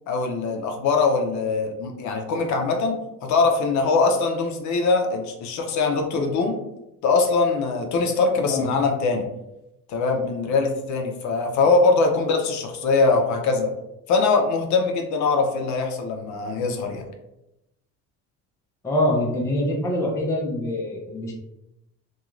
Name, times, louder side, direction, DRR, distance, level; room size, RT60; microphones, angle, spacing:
voice 1, 0.1-6.6 7.0-9.3 9.9-13.7 14.1-17.0, left 4 dB, 60° left, 3 dB, 0.5 m, -22 dB
voice 2, 18.8-21.3, left 1 dB, 10° left, -2 dB, 0.4 m, -24 dB
2.4 x 2.3 x 3.0 m, 0.89 s
cardioid pair, 140°, 33 cm